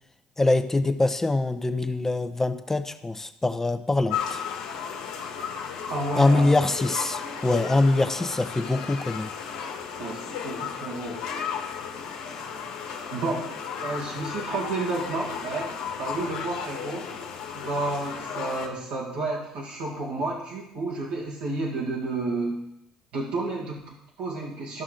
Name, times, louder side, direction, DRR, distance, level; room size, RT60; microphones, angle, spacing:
voice 1, 0.4-4.4 6.2-9.3, left 2 dB, 15° left, 10 dB, 0.8 m, -24 dB
sound 1, 4.1-18.7, left 7 dB, 80° left, 1.3 m, -34 dB
voice 2, 5.9-6.7 10.0-11.2 13.1-13.5 13.8-17.1 17.5-22.6 23.1-24.8, right 3 dB, 80° right, -5 dB, 2.0 m, -31 dB
13.0 x 6.0 x 3.9 m, 0.83 s
hypercardioid pair, 65°, 2 cm